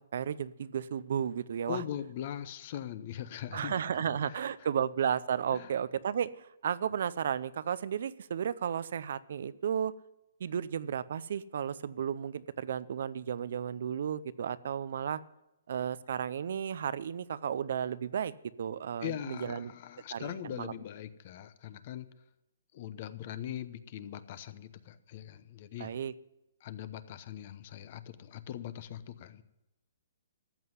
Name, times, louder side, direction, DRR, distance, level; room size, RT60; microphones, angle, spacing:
voice 1, 0.0-1.8 3.5-9.9 10.4-15.2 15.7-18.3 18.6-19.7 20.1-20.7 25.8-26.1, right 8 dB, 55° right, 17 dB, 0.5 m, -33 dB
voice 2, 1.7-4.0 4.3-4.7 5.5-5.7 19.0-22.1 22.7-25.9 26.6-29.4, left 11 dB, 35° left, 14 dB, 0.9 m, -41 dB
14.0 x 7.8 x 9.7 m, 0.91 s
hypercardioid pair, 165°, 0 cm